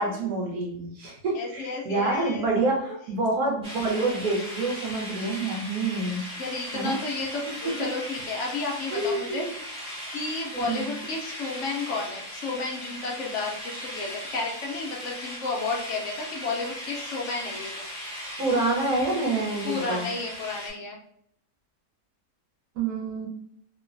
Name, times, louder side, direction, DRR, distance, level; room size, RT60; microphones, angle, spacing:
voice 1, 0.0-6.2 6.7-7.0 7.5-7.7 8.9-9.6 10.5-10.9 18.4-20.1 22.7-23.3, right 2 dB, 80° right, -2 dB, 1.4 m, -27 dB
voice 2, 1.3-2.4 2.9-3.0 6.4-9.4 9.8-17.8 19.6-21.0, left 3 dB, 65° left, -1 dB, 0.8 m, -32 dB
sound 1, 3.6-20.7, equal, 5° right, 1.0 m, -38 dB
3.0 x 2.1 x 2.5 m, 0.71 s
omnidirectional pair, 1.6 m